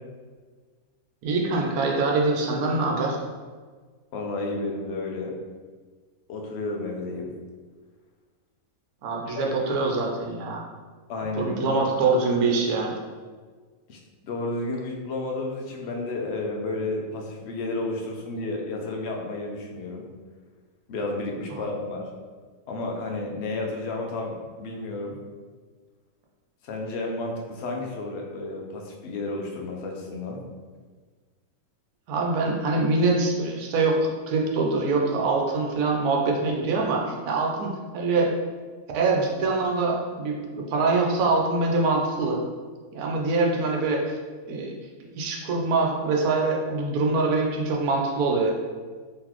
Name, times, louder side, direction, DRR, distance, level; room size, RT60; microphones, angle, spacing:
voice 1, 1.2-3.2 9.0-10.6 11.4-13.0 21.5-21.6 32.1-38.3 38.9-42.4 42.9-44.2 44.5-44.7 45.1-48.5, right 3 dB, 90° right, 0 dB, 1.2 m, -24 dB
voice 2, 4.1-5.3 6.3-7.3 9.3-9.5 11.1-11.8 13.9-20.1 20.9-22.1 22.7-25.2 26.6-30.4, left 2 dB, 60° left, 0 dB, 0.8 m, -32 dB
3.9 x 3.2 x 3.0 m, 1.5 s
omnidirectional pair, 1.5 m